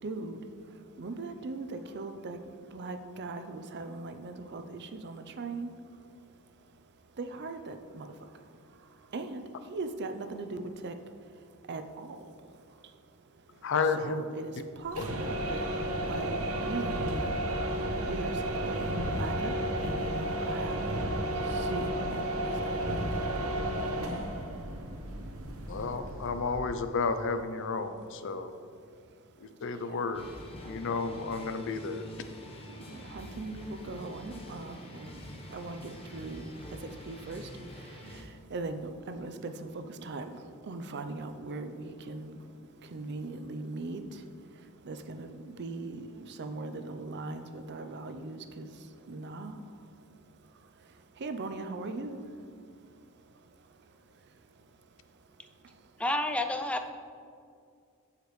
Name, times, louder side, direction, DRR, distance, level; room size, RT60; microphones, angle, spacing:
voice 1, 0.0-0.4 0.7-5.7 7.2-8.3 9.0-11.0 11.7-12.9 14.0-15.7 16.0-17.4 17.8-20.9 21.3-23.3 32.7-42.5 42.8-44.3 44.6-49.8 50.8-52.3, right 3 dB, 55° right, 8 dB, 0.5 m, -40 dB
voice 2, 13.6-14.2 15.0-15.1 25.7-28.5 29.4-30.3 30.6-32.1, left 4 dB, 60° left, 9 dB, 0.5 m, -32 dB
sound 1, 14.8-26.7, right 1 dB, 85° right, 0.9 m, -32 dB
sound 2, 30.1-38.2, left 1 dB, 25° left, 1.0 m, -46 dB
voice 3, 56.0-56.9, left 1 dB, 5° left, 6 dB, 0.4 m, -30 dB
15.0 x 5.0 x 3.2 m, 2.3 s
head